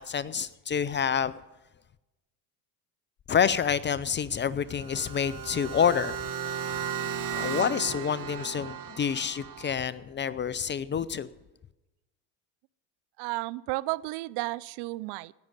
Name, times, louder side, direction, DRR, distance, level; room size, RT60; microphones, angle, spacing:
voice 1, 0.0-1.4 3.3-6.2 7.3-11.3, left 7 dB, 25° left, 18 dB, 0.4 m, -28 dB
sound 1, 4.7-9.7, right 8 dB, 40° right, 1.7 m, -35 dB
voice 2, 13.2-15.3, right 20 dB, 55° right, 20 dB, 0.5 m, -33 dB
17.5 x 6.3 x 9.6 m, 1.0 s
hypercardioid pair, 80°, 50 cm